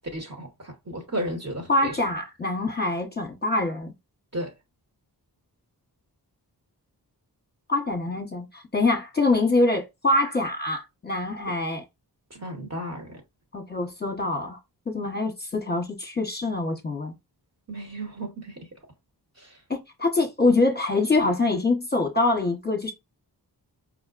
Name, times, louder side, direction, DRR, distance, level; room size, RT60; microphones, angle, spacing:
voice 1, 0.1-2.0 4.3-4.5 11.5-11.6 12.3-13.2 17.7-18.7 19.4-19.6, right 1 dB, 40° right, 1.1 m, -34 dB
voice 2, 1.7-3.9 7.7-11.8 13.5-14.6 14.9-17.1 19.7-22.9, left 2 dB, 25° left, 0.9 m, -24 dB
4.9 x 2.1 x 2.5 m
cardioid pair, 60°, 42 cm